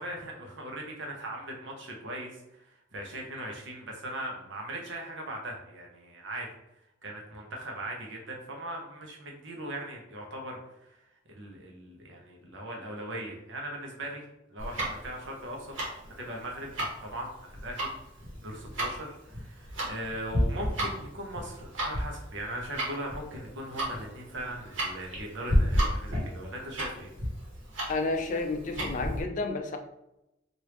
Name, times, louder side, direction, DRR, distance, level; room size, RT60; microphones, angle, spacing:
voice 1, 0.0-6.5 7.0-11.0 11.3-14.2 14.5-15.7 16.2-16.7 17.0-17.3 17.6-17.9 18.4-27.1, right 1 dB, 70° right, 0 dB, 0.8 m, -39 dB
Tick-tock, 14.6-29.2, equal, 85° right, 1.2 m, -32 dB
voice 2, 27.9-29.8, left 3 dB, 40° left, 5 dB, 0.3 m, -31 dB
3.3 x 2.6 x 3.0 m, 0.88 s
head